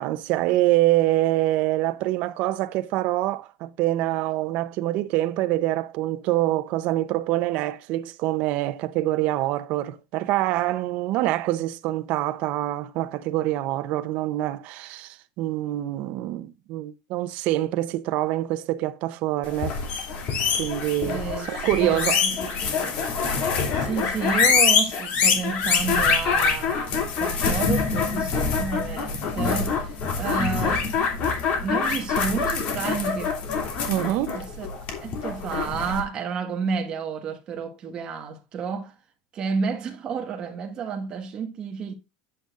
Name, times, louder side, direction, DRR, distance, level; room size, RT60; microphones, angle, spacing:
voice 1, 0.0-19.8 20.6-22.2 33.9-34.4, right 15 dB, 50° right, 0.8 m, -25 dB
sound 1, 19.5-36.0, left 5 dB, 45° left, 2.8 m, -25 dB
voice 2, 21.0-22.5 23.7-31.0 31.6-33.3 34.3-34.7 35.0-38.9 39.3-41.9, right 6 dB, 30° right, 1.5 m, -31 dB
9.7 x 8.8 x 2.5 m
cardioid pair, 160°, 3 cm